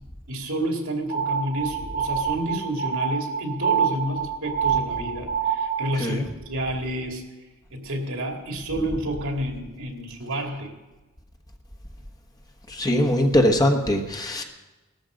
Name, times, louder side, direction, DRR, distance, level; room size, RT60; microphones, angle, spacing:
voice 1, 0.3-7.2 7.7-10.7, right 1 dB, 65° right, 3 dB, 2.6 m, -30 dB
sound 1, 1.1-6.0, right 7 dB, 65° left, 2.1 m, -26 dB
voice 2, 5.9-6.3 12.7-14.4, left 1 dB, 15° left, 3 dB, 1.2 m, -21 dB
18.0 x 13.5 x 5.2 m, 1.1 s
head